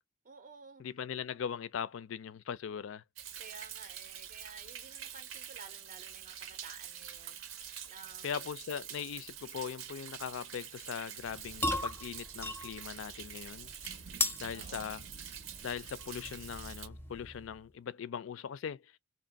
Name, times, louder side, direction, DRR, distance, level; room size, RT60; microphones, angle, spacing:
voice 1, 0.2-0.9 3.4-8.3 14.5-14.9, right 5 dB, 45° right, 0.5 m, -53 dB
voice 2, 0.8-3.0 8.2-13.7 14.4-15.0 15.6-18.9, left 7 dB, 75° left, 0.4 m, -40 dB
Thunder, 3.2-16.9, right 9 dB, 85° right, 0.7 m, -46 dB
sound 1, 11.2-17.6, left 2 dB, 10° left, 0.5 m, -39 dB
2.8 x 2.5 x 3.9 m
head